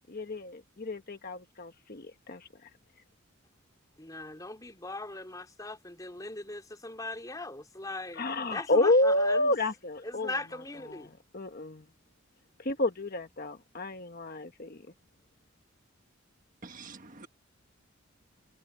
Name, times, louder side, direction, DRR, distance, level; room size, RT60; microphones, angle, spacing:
voice 1, 0.1-2.5 8.1-10.3 10.9-11.0 11.3-11.8 12.6-14.8, left 2 dB, 45° left, 1.3 m, -29 dB
voice 2, 4.0-9.6 10.0-11.1, left 2 dB, 15° left, 3.4 m, -40 dB
voice 3, 16.6-17.3, right 4 dB, 40° right, 1.5 m, -46 dB
head